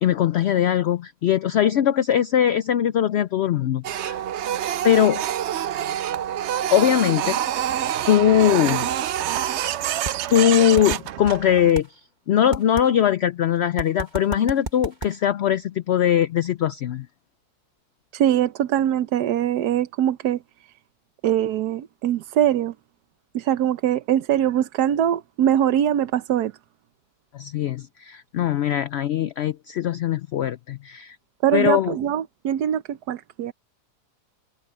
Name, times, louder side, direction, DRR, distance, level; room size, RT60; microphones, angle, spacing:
voice 1, 0.0-4.2 4.8-5.2 6.7-7.4 8.1-8.9 10.3-11.9 12.3-17.1 27.3-31.2 31.5-31.9, left 10 dB, 80° left, 0.5 m, -21 dB
Printer, 3.8-11.7, right 11 dB, 65° right, 0.7 m, -26 dB
sound 1, 10.1-10.2 10.8-11.0 11.8-11.9 12.5-12.9 13.8-15.1, right 2 dB, 30° right, 2.1 m, -30 dB
voice 2, 18.1-20.7 21.2-22.7 23.3-26.5 31.4-33.5, right 11 dB, 85° right, 1.3 m, -22 dB
omnidirectional pair, 1.7 m